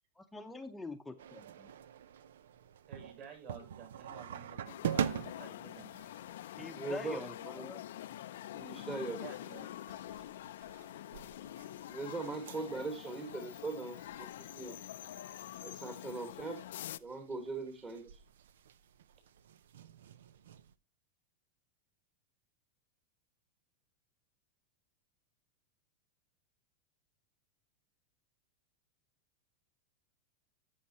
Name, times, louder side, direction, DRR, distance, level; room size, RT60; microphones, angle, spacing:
voice 1, 0.2-1.7 6.6-7.8, left 3 dB, 5° left, 0.8 m, -45 dB
sound 1, 1.2-20.7, right 8 dB, 90° right, 0.6 m, -45 dB
voice 2, 2.9-6.0 8.9-10.0, right 6 dB, 50° right, 7.3 m, -52 dB
sound 2, 4.7-17.0, left 13 dB, 80° left, 0.5 m, -46 dB
voice 3, 6.7-7.7 8.5-9.2 11.9-14.8 15.6-16.6 17.0-18.2, right 3 dB, 20° right, 1.6 m, -40 dB
14.0 x 6.4 x 2.9 m
supercardioid pair, 140°, 0 cm